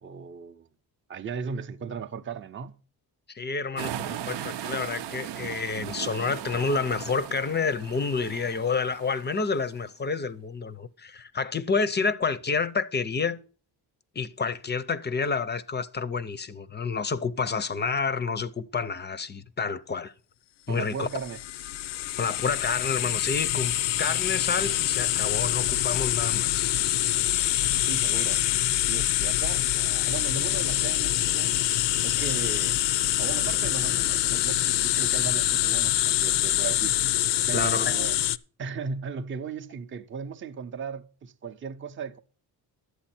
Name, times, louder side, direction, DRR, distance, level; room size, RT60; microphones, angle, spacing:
voice 1, 0.0-0.7 1.1-2.8 20.7-21.4 27.8-28.5 28.8-31.6 32.0-32.8 33.2-37.0 37.5-38.2 38.6-42.2, right 6 dB, 30° right, 0.5 m, -36 dB
voice 2, 3.3-13.4 14.2-20.1 20.7-21.1 22.2-23.7 24.0-26.9 37.5-38.1, left 5 dB, 25° left, 0.5 m, -29 dB
sound 1, 3.8-9.6, right 11 dB, 85° right, 0.7 m, -37 dB
sound 2, 21.1-38.4, left 14 dB, 85° left, 0.5 m, -25 dB
11.5 x 8.2 x 4.3 m
wide cardioid pair, 160°, 41 cm